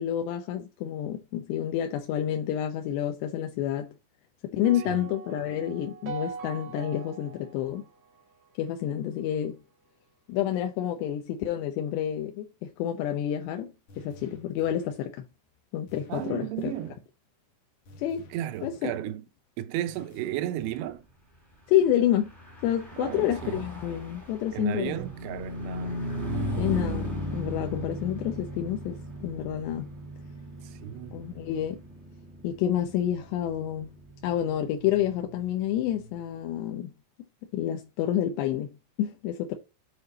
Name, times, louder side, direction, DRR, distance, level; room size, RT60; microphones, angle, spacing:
voice 1, 0.0-3.9 4.4-7.8 8.6-9.6 10.3-15.2 15.7-16.7 18.0-18.3 18.6-18.9 21.7-22.3 22.6-25.0 26.6-29.9 31.1-31.8 32.4-33.9 34.2-36.9 37.5-39.6, left 11 dB, 85° left, 2.9 m, -29 dB
sound 1, 4.6-8.9, right 6 dB, 65° right, 1.5 m, -41 dB
sound 2, 13.9-15.1 15.9-17.0 17.9-19.1 19.9-21.1, right 1 dB, 50° left, 2.2 m, -52 dB
voice 2, 16.1-17.0 18.3-19.2 19.6-21.0 23.0-23.7 24.5-26.0 30.7-31.2, right 13 dB, 80° right, 2.6 m, -34 dB
Car passing by / Truck, 22.2-35.9, equal, 5° right, 1.4 m, -37 dB
8.1 x 4.5 x 3.9 m
omnidirectional pair, 4.9 m